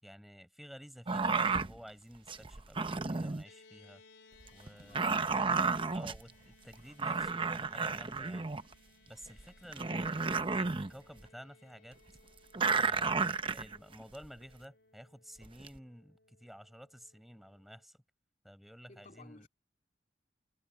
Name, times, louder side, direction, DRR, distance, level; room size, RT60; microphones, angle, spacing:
voice 1, 0.0-4.0 4.5-5.5 5.9-8.5 9.1-12.0 12.6-18.0 18.4-19.5, equal, ahead, 5.2 m, -53 dB
sound 1, 1.1-1.8 2.3-3.4 4.4-6.2 6.7-6.8 7.0-8.7 9.4-9.5 9.7-10.9 12.5-14.3 15.4-15.8, right 4 dB, 30° right, 0.8 m, -32 dB
sound 2, 3.4-17.8, left 3 dB, 85° left, 3.8 m, -64 dB
voice 2, 4.8-5.4 18.9-19.5, left 2 dB, 45° left, 3.0 m, -57 dB
head